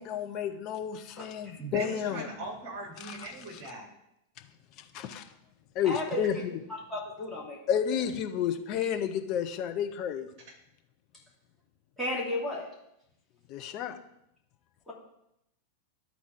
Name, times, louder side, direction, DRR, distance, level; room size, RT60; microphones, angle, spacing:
voice 1, 0.0-2.2 3.0-3.3 4.9-5.2 5.7-6.5 7.7-10.3 13.5-14.0, left 9 dB, 40° left, 6 dB, 0.8 m, -31 dB
voice 2, 1.6-3.9, right 3 dB, 35° right, -1 dB, 2.8 m, -39 dB
voice 3, 5.8-6.4 6.9-7.6 12.0-12.7 14.9-15.0, left 1 dB, ahead, -5 dB, 2.9 m, -33 dB
11.5 x 4.2 x 4.6 m, 0.82 s
figure-of-eight pair, 90°, 0 cm